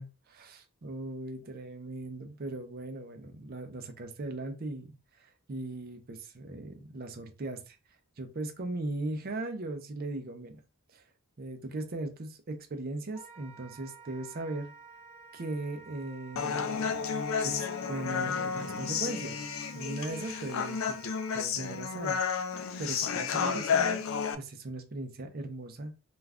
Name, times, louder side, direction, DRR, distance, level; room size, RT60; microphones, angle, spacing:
voice 1, 0.0-4.9 5.1-7.8 8.2-10.5 10.9-11.0 11.4-14.7 15.3-17.0 17.4-19.4 19.7-21.0 21.3-24.1 24.4-25.9, right 2 dB, 45° right, 6 dB, 0.5 m, -38 dB
Wind instrument woodwind instrument, 13.1-21.5, right 4 dB, 30° right, 0.9 m, -52 dB
Human voice, 16.4-24.3, left 6 dB, 65° left, 0.3 m, -31 dB
2.4 x 2.2 x 3.4 m, 0.30 s
head